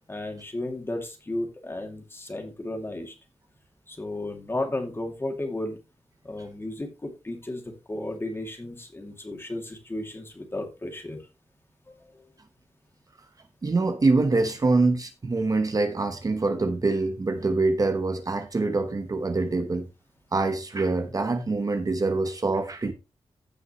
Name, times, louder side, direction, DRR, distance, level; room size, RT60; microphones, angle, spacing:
voice 1, 0.1-3.1 3.9-5.8 6.2-7.6 7.9-11.2 11.9-12.2, left 1 dB, 20° left, 2.5 m, -34 dB
voice 2, 13.6-19.9 20.3-22.9, right 3 dB, 35° right, 1.0 m, -25 dB
16.0 x 5.5 x 3.0 m
wide cardioid pair, 130°, 11 cm